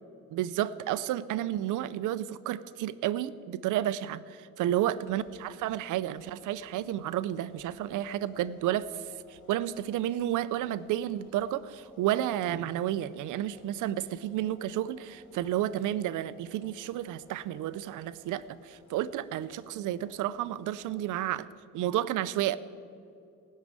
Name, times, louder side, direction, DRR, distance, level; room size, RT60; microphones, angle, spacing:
voice 1, 0.3-9.0 9.3-21.5 21.7-22.6, right 12 dB, 85° right, 15 dB, 0.6 m, -31 dB
sound 1, 4.8-21.3, left 3 dB, 85° left, 2.3 m, -60 dB
16.5 x 6.5 x 8.8 m, 2.5 s
cardioid pair, 90°, 30 cm